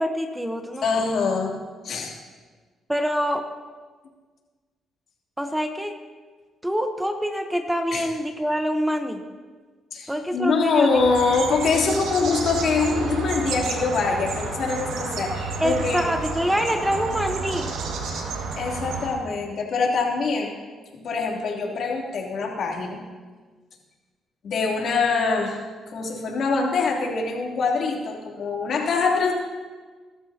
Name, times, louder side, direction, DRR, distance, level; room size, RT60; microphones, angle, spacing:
voice 1, 0.0-1.1 2.9-3.5 5.4-5.9 6.6-9.2 10.1-11.1 15.6-17.7, equal, 5° right, 6 dB, 1.0 m, -25 dB
voice 2, 0.8-1.6 1.8-2.2 7.9-8.0 9.9-16.1 18.6-20.6 20.9-23.0 24.4-25.6 25.9-29.3, left 4 dB, 65° left, -1 dB, 3.1 m, -24 dB
sound 1, 10.9-19.1, right 4 dB, 85° right, 2.0 m, -30 dB
21.5 x 13.0 x 2.9 m, 1.5 s
cardioid pair, 90°, 0 cm